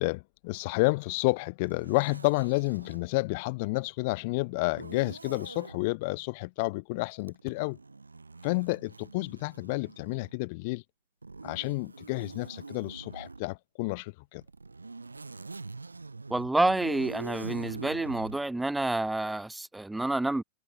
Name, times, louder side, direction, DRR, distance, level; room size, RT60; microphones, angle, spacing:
voice 1, 0.0-7.8 8.4-10.8 11.4-14.4, left 26 dB, 50° left, 0.5 m, -30 dB
Zipper (clothing), 1.7-3.1 4.7-5.8 7.2-10.4 11.2-13.5 14.4-18.4, right 3 dB, 80° right, 7.3 m, -44 dB
voice 2, 16.3-20.4, right 2 dB, 5° right, 0.4 m, -28 dB
figure-of-eight pair, 90°, 0 cm